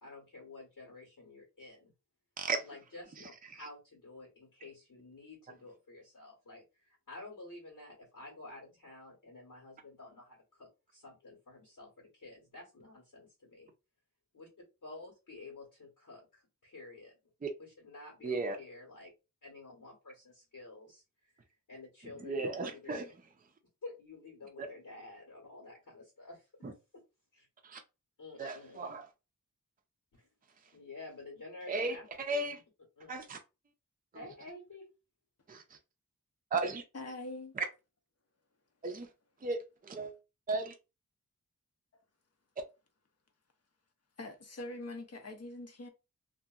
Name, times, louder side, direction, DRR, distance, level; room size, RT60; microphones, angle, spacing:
voice 1, 0.0-1.9 2.6-13.7 14.3-14.5 14.8-17.1 17.6-19.1 19.4-23.0 23.8-26.5 27.3-27.5 28.2-28.9 30.1-30.3 30.7-32.0 32.3-32.5 33.0-33.2 34.1-34.9, left 2 dB, 90° left, 1.3 m, -51 dB
voice 2, 18.2-18.6 22.2-23.1 24.6-24.7 26.6-26.7 27.6-27.8 28.4-29.1 31.7-32.6 33.1-33.4 35.5-35.6 36.5-36.8 37.6-37.7 38.8-39.1 39.4-40.1 40.5-40.7, right 3 dB, 25° right, 0.4 m, -35 dB
voice 3, 36.9-37.5 44.2-45.9, left 2 dB, 50° left, 0.6 m, -43 dB
2.8 x 2.5 x 2.4 m
wide cardioid pair, 85°, 33 cm